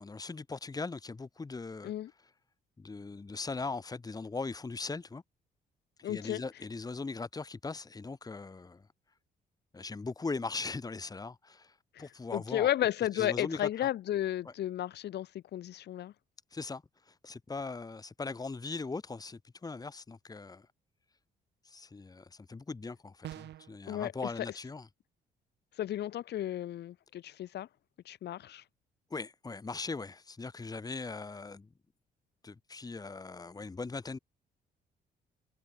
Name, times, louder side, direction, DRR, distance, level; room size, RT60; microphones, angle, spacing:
voice 1, 0.0-1.9 2.8-5.2 6.0-8.9 9.7-12.7 13.1-13.9 14.4-14.5 16.5-20.7 21.6-24.9 29.1-31.7 32.4-34.2, left 3 dB, 20° left, 2.5 m, -40 dB
voice 2, 6.0-6.4 11.9-16.1 23.9-24.1 25.8-27.7 28.1-28.6, left 12 dB, 75° left, 4.2 m, -33 dB
sound 1, 23.2-23.8, right 13 dB, 75° right, 5.6 m, -44 dB
cardioid pair, 105°, 18 cm